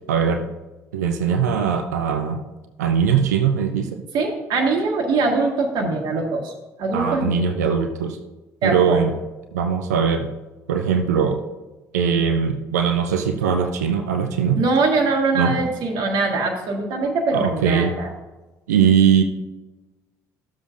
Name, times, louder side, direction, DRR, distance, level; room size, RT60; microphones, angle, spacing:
voice 1, 0.1-0.5 0.9-2.4 2.8-4.0 6.9-8.2 8.6-9.1 9.5-10.3 10.7-11.4 11.9-14.6 15.3-15.6 17.3-17.9 18.7-19.2, right 7 dB, 80° right, 6 dB, 0.6 m, -20 dB
voice 2, 4.1-6.5 6.8-7.4 8.6-9.0 14.6-18.1, right 3 dB, 55° right, 0 dB, 1.5 m, -22 dB
13.0 x 7.2 x 2.5 m, 1.1 s
hypercardioid pair, 55°, 9 cm